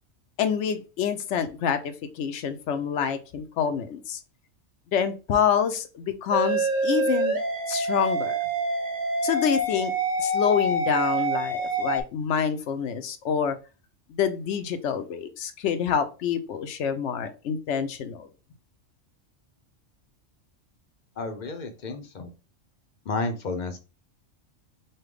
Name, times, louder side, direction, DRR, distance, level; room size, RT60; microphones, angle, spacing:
voice 1, 0.4-4.2 4.9-7.4 7.7-8.4 9.2-9.9 10.2-13.6 14.1-18.3, left 7 dB, 75° left, 10 dB, 0.9 m, -27 dB
sound 1, 6.3-12.0, right 1 dB, 40° right, 1.0 m, -26 dB
voice 2, 21.2-22.3 23.1-23.8, left 3 dB, 45° left, 7 dB, 0.7 m, -31 dB
5.5 x 2.2 x 3.3 m, 0.31 s
omnidirectional pair, 1.3 m